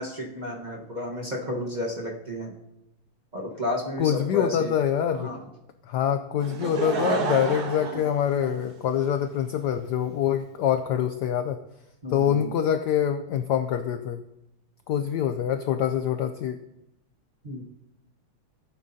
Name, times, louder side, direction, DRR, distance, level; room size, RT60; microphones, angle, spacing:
voice 1, 0.0-2.5 3.3-4.7 5.1-5.4 12.0-12.5 17.4-17.6, left 1 dB, 25° right, -2 dB, 1.0 m, -32 dB
voice 2, 4.0-5.3 5.9-11.6 12.1-14.2 14.9-16.6, left 9 dB, 80° left, 9 dB, 0.9 m, -25 dB
Laughter / Crowd, 6.4-9.0 9.7-9.8, right 4 dB, 55° right, 1.5 m, -30 dB
16.0 x 8.6 x 2.7 m, 0.87 s
omnidirectional pair, 2.3 m